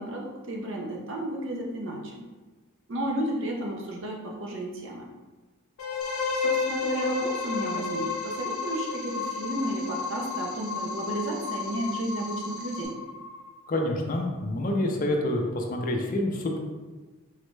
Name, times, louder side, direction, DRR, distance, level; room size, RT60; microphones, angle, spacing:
voice 1, 0.0-2.2 2.9-5.0 6.3-12.9, right 1 dB, 65° right, -1 dB, 0.6 m, -32 dB
sound 1, 5.8-13.6, left 4 dB, 85° left, 0.6 m, -32 dB
sound 2, 6.0-12.9, left 2 dB, 25° left, 0.8 m, -47 dB
voice 2, 13.7-16.6, left 1 dB, 40° left, 2 dB, 0.4 m, -27 dB
3.9 x 2.2 x 3.1 m, 1.3 s
head